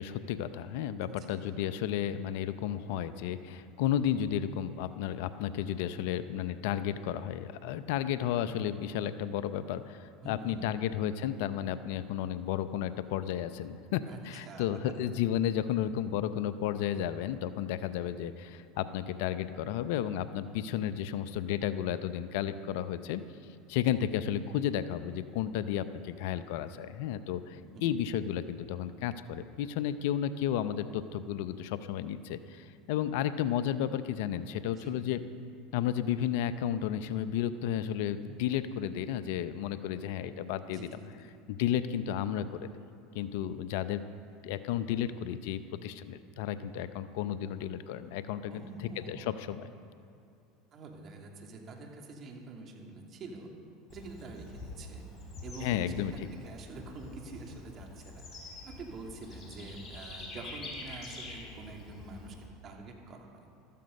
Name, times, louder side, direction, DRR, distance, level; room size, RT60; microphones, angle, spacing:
voice 1, 0.0-23.2 23.7-35.2 35.7-41.0 41.5-42.8 43.1-44.0 44.4-49.7 55.6-56.3, left 10 dB, 70° left, 13 dB, 0.6 m, -33 dB
voice 2, 10.2-10.8 14.1-14.7 27.6-28.0 34.8-34.9 40.7-40.9 41.2-41.3 48.5-49.4 50.7-53.5 53.9-55.0 55.4-62.4 62.6-63.5, right 3 dB, 45° right, 1 dB, 2.8 m, -46 dB
Bird / Insect, 53.9-62.5, left 2 dB, 35° left, 4.4 m, -46 dB
14.5 x 13.5 x 5.3 m, 2.6 s
hypercardioid pair, 90°, 0 cm